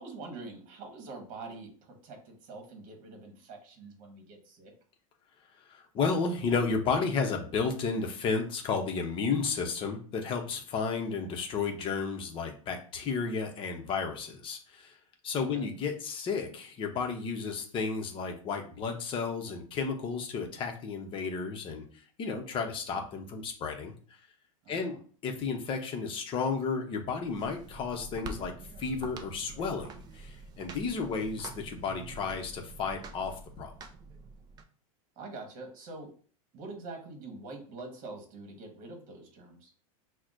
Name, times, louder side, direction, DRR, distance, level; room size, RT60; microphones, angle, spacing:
voice 1, 0.0-4.7 15.5-15.7 24.6-25.0 35.2-36.1 36.5-39.7, right 3 dB, 50° right, 3 dB, 1.3 m, -45 dB
voice 2, 5.7-15.0 15.2-21.8 22.2-23.9 24.7-24.9 25.2-28.5 28.8-33.7, left 5 dB, 30° left, 3 dB, 0.7 m, -32 dB
sound 1, 27.2-34.6, right 4 dB, 20° right, 0.4 m, -46 dB
5.8 x 2.1 x 2.5 m, 0.43 s
supercardioid pair, 135°, 18 cm